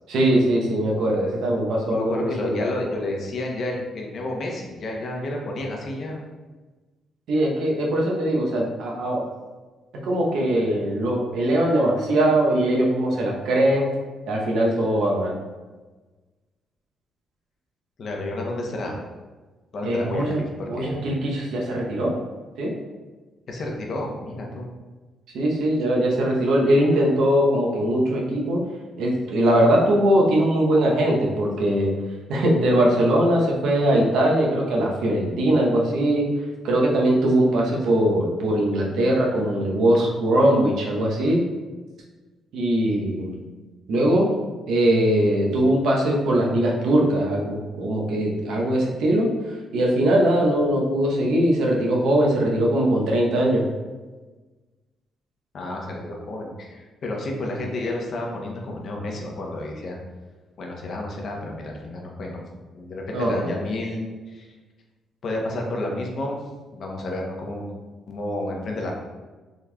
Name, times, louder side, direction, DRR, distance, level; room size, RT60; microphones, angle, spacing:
voice 1, 0.1-2.7 7.3-9.2 10.0-13.9 14.3-15.3 19.8-20.4 20.7-22.1 22.6-22.7 25.3-28.6 29.0-31.9 32.3-36.2 36.6-41.4 42.5-43.4 43.9-44.3 44.7-49.3 49.7-53.6 63.1-63.5, right 1 dB, 80° right, -2 dB, 0.7 m, -21 dB
voice 2, 1.9-6.2 18.0-19.0 19.7-20.9 23.5-24.7 39.9-40.0 55.5-60.0 60.6-62.4 62.7-64.5 65.2-66.4 66.7-67.7 68.1-68.9, left 1 dB, 55° left, 0 dB, 0.7 m, -30 dB
3.7 x 3.1 x 2.2 m, 1.3 s
cardioid pair, 90°, 0 cm